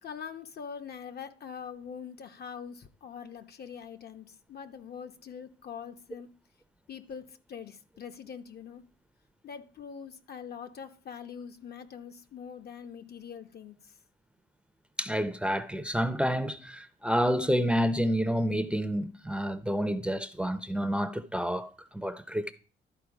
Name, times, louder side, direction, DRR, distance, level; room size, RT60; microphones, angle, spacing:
voice 1, 0.0-6.3 6.9-8.8 9.4-13.9, left 7 dB, 55° left, 0.9 m, -43 dB
voice 2, 15.0-22.5, equal, 5° right, 0.6 m, -29 dB
12.0 x 4.4 x 4.9 m
cardioid pair, 90°, 20 cm